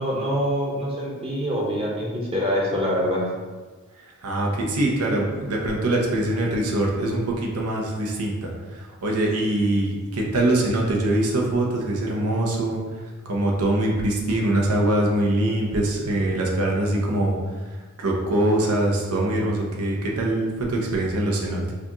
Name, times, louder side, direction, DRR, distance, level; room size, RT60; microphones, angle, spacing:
voice 1, 0.0-3.3, equal, 25° right, -3 dB, 0.8 m, -25 dB
voice 2, 4.2-8.5 9.0-12.8 13.3-17.3 18.0-21.7, right 1 dB, 90° right, -1 dB, 0.8 m, -23 dB
4.8 x 2.4 x 2.9 m, 1.3 s
head